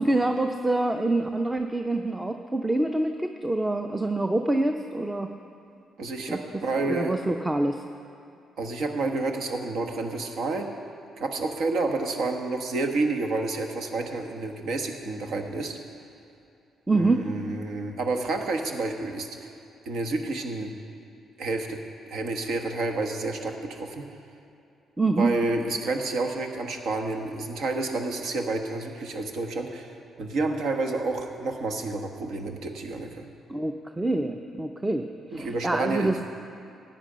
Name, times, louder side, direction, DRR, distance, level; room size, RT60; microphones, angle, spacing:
voice 1, 0.0-5.3 6.3-6.4 6.8-7.8 16.9-17.3 25.0-25.3 33.5-35.1 35.3-36.2, right 2 dB, 15° right, 5 dB, 0.5 m, -26 dB
voice 2, 6.0-7.2 8.6-10.7 11.2-15.8 16.9-19.5 19.8-20.7 21.4-21.8 22.1-24.1 25.2-33.3 35.3-36.1, right 3 dB, 75° right, 4 dB, 1.2 m, -29 dB
14.0 x 9.2 x 5.1 m, 2.6 s
cardioid pair, 90°, 0 cm